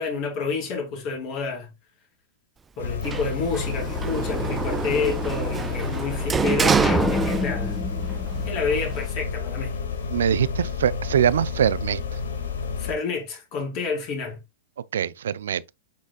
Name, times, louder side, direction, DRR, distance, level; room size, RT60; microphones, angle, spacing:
voice 1, 0.0-1.7 2.8-7.8 8.4-9.7 12.8-14.4, left 4 dB, 45° left, 4.3 m, -29 dB
sound 1, 2.8-12.9, left 5 dB, 70° left, 1.8 m, -30 dB
Sliding door, 3.0-7.9 8.2-9.1, right 6 dB, 15° right, 0.4 m, -27 dB
sound 2, 6.8-9.3, left 1 dB, 10° left, 1.4 m, -28 dB
voice 2, 10.1-12.0 14.9-15.6, right 9 dB, 65° right, 0.5 m, -23 dB
8.4 x 6.3 x 2.3 m
figure-of-eight pair, 100°, 0 cm